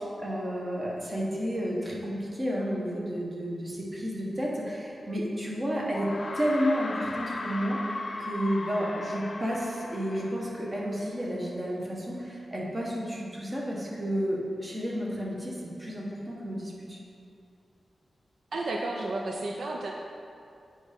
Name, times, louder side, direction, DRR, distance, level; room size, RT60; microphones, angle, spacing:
voice 1, 0.0-15.5 15.8-17.0, equal, 25° right, -4 dB, 1.5 m, -31 dB
sound 1, 5.1-5.2 5.9-11.1, left 2 dB, 40° left, 0.5 m, -38 dB
voice 2, 18.5-19.9, right 2 dB, 70° right, 0 dB, 0.6 m, -32 dB
8.2 x 5.3 x 5.3 m, 2.5 s
wide cardioid pair, 160°, 0 cm